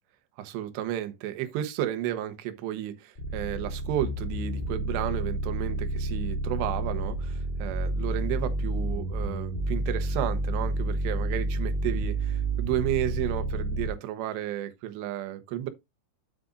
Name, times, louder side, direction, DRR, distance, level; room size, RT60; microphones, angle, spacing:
voice 1, 0.4-15.7, right 12 dB, 75° right, 2.9 m, -32 dB
sound 1, 3.1-13.9, right 2 dB, 70° left, 0.5 m, -30 dB
9.9 x 7.6 x 2.5 m
omnidirectional pair, 5.6 m